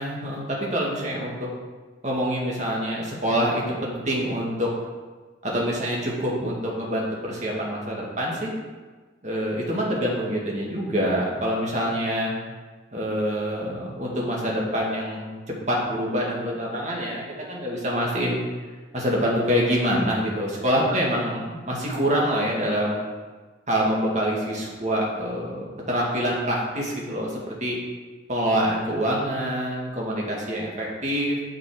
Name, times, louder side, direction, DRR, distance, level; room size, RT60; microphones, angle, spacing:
voice 1, 0.0-1.5 2.0-4.7 5.4-8.5 9.2-12.3 12.9-18.4 18.9-23.0 23.7-27.8 28.3-31.4, equal, 40° right, -3 dB, 2.0 m, -26 dB
9.1 x 6.0 x 4.9 m, 1.4 s
head